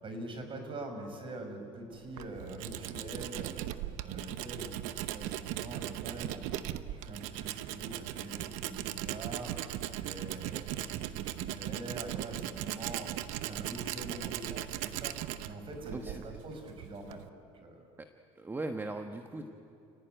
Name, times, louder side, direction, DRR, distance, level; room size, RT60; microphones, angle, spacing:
voice 1, 0.0-6.6 6.9-17.3 17.5-17.9 19.3-19.4, right 2 dB, 40° right, 5 dB, 6.0 m, -44 dB
Tools, 1.9-17.3, right 13 dB, 75° right, 1.0 m, -38 dB
voice 2, 15.9-16.2 18.0-18.1 18.3-19.4, right 2 dB, 15° right, 6 dB, 1.3 m, -38 dB
29.5 x 18.0 x 9.3 m, 2.7 s
supercardioid pair, 90°, 13 cm